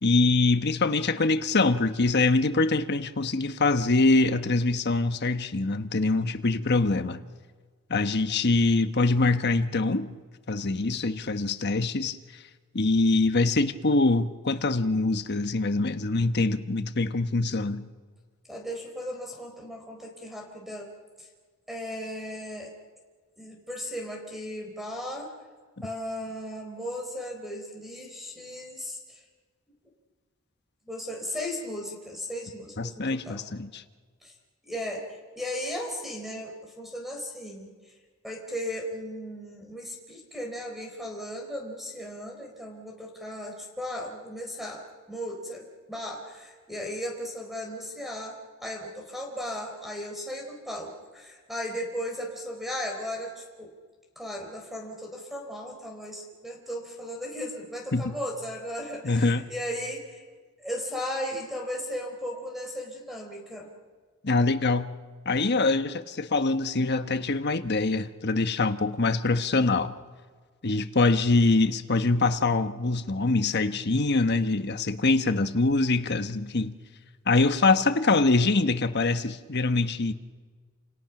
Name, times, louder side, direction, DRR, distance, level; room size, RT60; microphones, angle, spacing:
voice 1, 0.0-7.3 7.9-10.1 10.5-12.2 12.7-17.9 32.8-33.8 57.9-58.1 59.0-59.5 64.2-64.9 65.2-70.0 70.6-76.8 77.3-80.1, left 3 dB, 50° left, 1.2 m, -24 dB
voice 2, 18.5-20.9 21.2-21.3 21.7-22.7 23.4-25.3 25.8-29.2 30.9-33.4 34.2-34.3 34.6-37.7 38.2-53.7 54.2-60.2 60.6-63.7, equal, ahead, 4.1 m, -36 dB
29.0 x 28.5 x 6.0 m
head